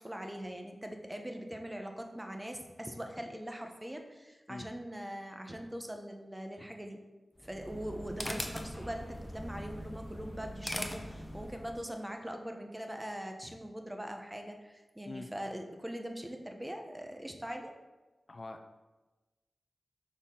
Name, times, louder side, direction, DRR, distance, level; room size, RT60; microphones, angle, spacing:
voice 1, 0.0-7.0 7.4-17.7, equal, 15° right, 4 dB, 0.8 m, -42 dB
sound 1, 7.4-11.8, left 1 dB, 20° left, 0.7 m, -41 dB
voice 2, 18.3-18.7, left 2 dB, 55° left, 6 dB, 0.4 m, -44 dB
6.0 x 4.2 x 3.7 m, 1.2 s
cardioid pair, 45°, 0 cm